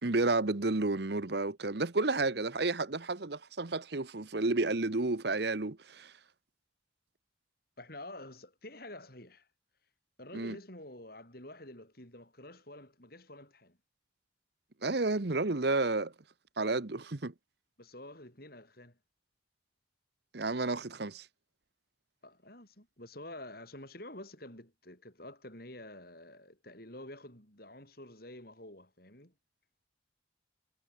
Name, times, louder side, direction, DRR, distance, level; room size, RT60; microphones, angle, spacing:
voice 1, 0.0-6.1 10.3-10.6 14.8-16.1 16.6-17.3 20.3-21.2, right 3 dB, 55° right, 1.0 m, -31 dB
voice 2, 7.8-9.5 10.2-13.8 17.8-19.0 22.2-29.3, left 1 dB, 50° left, 6.8 m, -49 dB
head